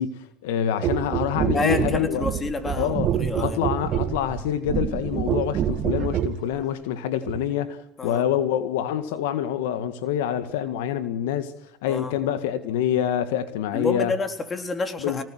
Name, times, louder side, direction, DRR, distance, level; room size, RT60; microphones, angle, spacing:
voice 1, 0.0-2.3 2.8-3.1 3.4-11.5 11.8-14.1 15.0-15.2, left 10 dB, 80° left, 1.8 m, -26 dB
sound 1, 0.8-6.4 7.3-7.4, right 10 dB, 45° right, 2.1 m, -26 dB
voice 2, 1.5-3.6 8.0-8.3 11.9-12.2 13.7-15.2, left 3 dB, 25° left, 3.9 m, -28 dB
25.0 x 19.0 x 8.0 m
supercardioid pair, 100°, 0 cm